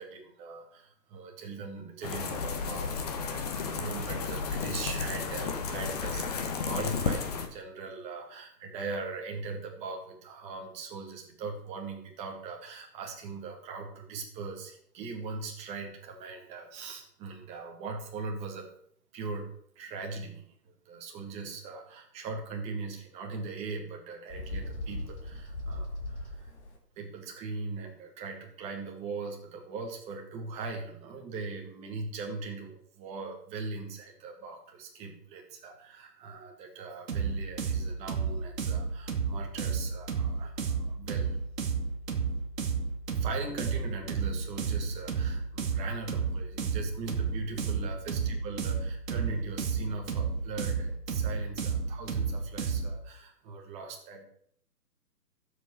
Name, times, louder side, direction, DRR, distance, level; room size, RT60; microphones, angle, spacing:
voice 1, 0.0-18.7 19.1-19.5 19.8-26.5 27.0-41.4 43.1-54.3, right 4 dB, 15° right, 1 dB, 1.8 m, -40 dB
sound 1, 2.0-7.5, left 5 dB, 25° left, 1.1 m, -33 dB
Bird, 24.3-26.8, left 1 dB, 40° left, 2.7 m, -38 dB
sound 2, 37.1-53.0, right 5 dB, 55° right, 2.5 m, -31 dB
13.5 x 7.7 x 6.4 m, 0.65 s
hypercardioid pair, 155°, 49 cm